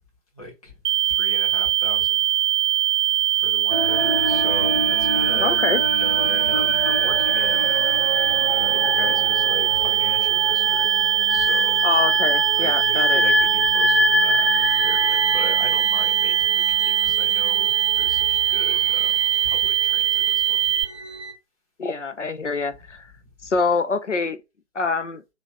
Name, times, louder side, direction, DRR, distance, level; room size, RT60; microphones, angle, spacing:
voice 1, 0.3-0.7 1.0-2.2 3.3-5.6 5.9-8.1 8.5-10.9 11.3-11.8 12.6-19.1 19.4-20.7 23.4-23.5, left 2 dB, 30° left, 1.1 m, -38 dB
sound 1, 0.8-20.8, right 12 dB, 75° right, 0.5 m, -21 dB
sound 2, 3.7-21.3, left 2 dB, 10° right, 0.8 m, -27 dB
voice 2, 5.4-5.8 11.8-13.2 21.8-23.0 23.4-24.4 24.7-25.2, left 4 dB, 70° left, 0.7 m, -25 dB
2.9 x 2.5 x 3.5 m
figure-of-eight pair, 155°, 37 cm